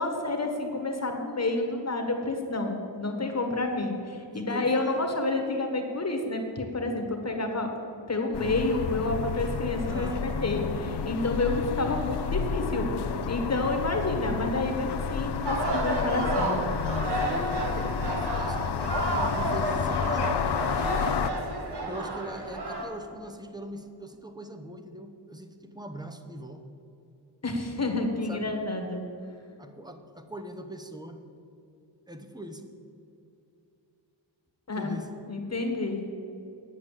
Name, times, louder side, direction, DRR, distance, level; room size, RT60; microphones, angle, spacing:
voice 1, 0.0-7.7 8.1-12.9 13.3-16.6 27.4-29.0 34.7-34.9 35.3-36.0, left 2 dB, 35° left, 4 dB, 1.5 m, -29 dB
voice 2, 4.3-5.0 9.9-10.3 17.2-21.2 21.9-26.7 28.2-28.5 29.6-31.2 32.1-32.7 34.7-35.1, right 1 dB, 10° right, 7 dB, 0.8 m, -41 dB
sound 1, 8.3-21.3, left 7 dB, 65° left, 0.6 m, -31 dB
sound 2, 15.5-22.8, right 2 dB, 60° right, 1.9 m, -31 dB
9.6 x 8.5 x 7.3 m, 2.7 s
wide cardioid pair, 140°, 44 cm